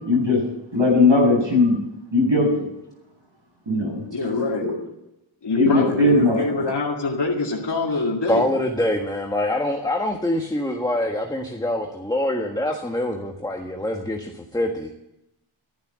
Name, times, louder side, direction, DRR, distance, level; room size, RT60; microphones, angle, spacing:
voice 1, 0.0-0.4 0.7-1.8 2.1-2.5 3.7-4.0 4.6-4.7 5.5-6.4, left 2 dB, 65° right, 0 dB, 7.3 m, -18 dB
voice 2, 3.8-4.9 5.4-8.4, left 3 dB, 60° left, -2 dB, 2.3 m, -25 dB
voice 3, 8.3-15.0, left 1 dB, 10° left, 2 dB, 1.5 m, -25 dB
12.5 x 11.5 x 7.5 m, 0.88 s
wide cardioid pair, 60°, 48 cm